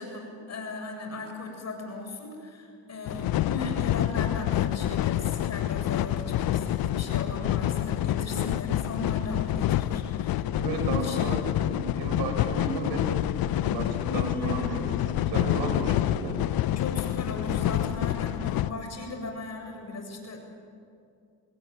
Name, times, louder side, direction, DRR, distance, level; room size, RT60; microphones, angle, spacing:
voice 1, 0.0-10.4 10.8-11.2 11.7-11.9 14.0-14.7 16.8-20.4, left 2 dB, 40° left, 4 dB, 7.9 m, -37 dB
sound 1, 3.1-18.7, left 13 dB, 60° left, 1.0 m, -27 dB
voice 2, 10.4-13.2 13.5-16.4, right 2 dB, 70° right, 5 dB, 6.7 m, -34 dB
26.5 x 21.0 x 9.4 m, 2.4 s
supercardioid pair, 85°, 41 cm